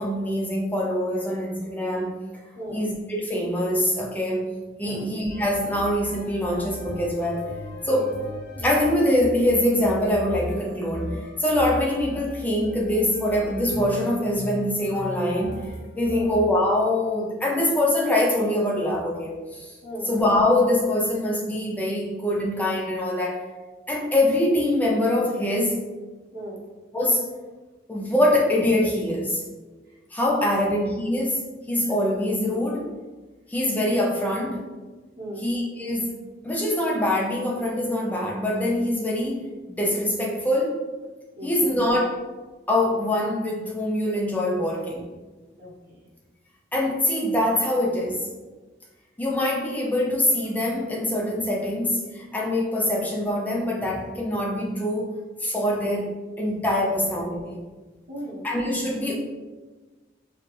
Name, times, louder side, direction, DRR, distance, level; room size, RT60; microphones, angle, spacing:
voice 1, 0.0-2.2 2.7-4.5 4.8-7.5 7.8-8.1 8.6-11.1 11.4-15.6 16.0-19.7 20.1-23.5 23.9-25.8 26.9-27.2 27.9-29.4 30.1-31.4 31.7-32.9 33.5-34.7 35.4-36.2 36.4-39.4 39.8-40.8 41.4-42.1 42.7-45.1 46.7-48.3 49.2-57.6 58.4-59.2, left 1 dB, 10° left, -2 dB, 0.5 m, -24 dB
voice 2, 2.6-2.9 4.8-5.1 7.9-8.1 16.1-16.4 19.8-20.1 26.3-26.6 29.8-30.0 30.4-30.7 35.2-35.5 41.3-41.8 45.6-46.1 56.8-57.1 58.1-58.5, right 1 dB, 60° right, -10 dB, 1.1 m, -37 dB
sound 1, 5.3-16.5, left 1 dB, 80° left, 0.6 m, -37 dB
4.7 x 2.4 x 3.1 m, 1.3 s
head